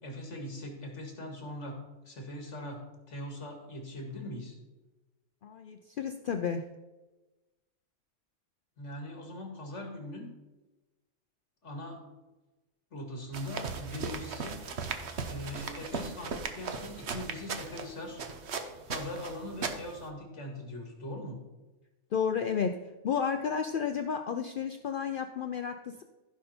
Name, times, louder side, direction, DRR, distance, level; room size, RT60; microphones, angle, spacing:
voice 1, 0.0-4.5 8.8-10.3 11.6-12.0 12.9-14.6 15.3-18.2 18.9-21.4, left 1 dB, 75° left, 2 dB, 2.4 m, -41 dB
voice 2, 5.4-6.6 22.1-22.8 23.0-26.0, left 7 dB, 55° left, 6 dB, 0.6 m, -32 dB
sound 1, 13.3-20.1, right 5 dB, 65° right, 1.2 m, -38 dB
15.0 x 5.4 x 4.3 m, 1.1 s
omnidirectional pair, 1.2 m